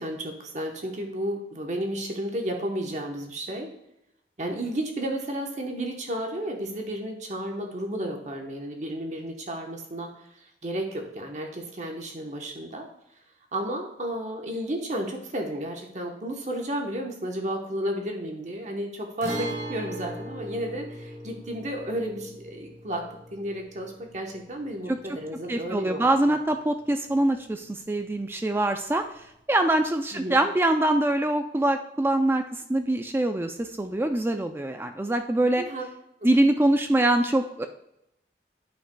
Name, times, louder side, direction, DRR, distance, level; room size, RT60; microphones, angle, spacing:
voice 1, 0.0-3.7 4.4-12.9 13.5-26.4 30.1-30.4 35.6-35.9, right 1 dB, 40° right, 2 dB, 1.0 m, -32 dB
Guitar, 19.2-26.8 27.1-27.2 29.2-29.3, right 1 dB, 85° right, 2.0 m, -39 dB
voice 2, 25.5-29.0 29.5-35.6 36.2-37.7, right 1 dB, 15° right, 6 dB, 0.3 m, -24 dB
9.7 x 5.7 x 2.2 m, 0.82 s
head